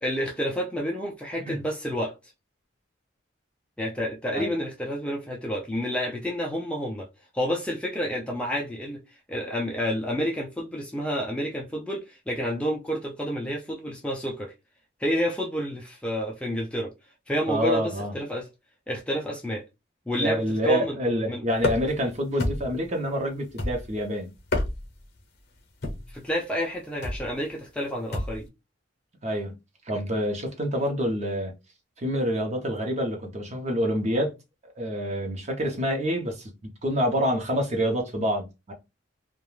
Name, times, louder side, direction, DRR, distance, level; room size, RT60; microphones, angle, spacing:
voice 1, 0.0-2.1 3.8-7.1 7.3-9.0 9.3-14.5 15.0-16.9 17.3-18.5 18.9-19.6 20.1-21.0 21.3-21.4 26.1-28.5, equal, 5° left, 0.4 m, -29 dB
voice 2, 17.5-18.2 20.2-24.3 29.2-29.5 29.9-31.5 32.0-34.3 34.8-36.5 36.8-38.7, equal, 35° right, 0.7 m, -27 dB
sound 1, 21.6-22.0 22.4-22.9 23.6-24.0 24.4-25.0 25.8-26.2 27.0-27.3 28.1-28.5, left 2 dB, 55° left, 0.7 m, -29 dB
2.4 x 2.2 x 3.1 m
head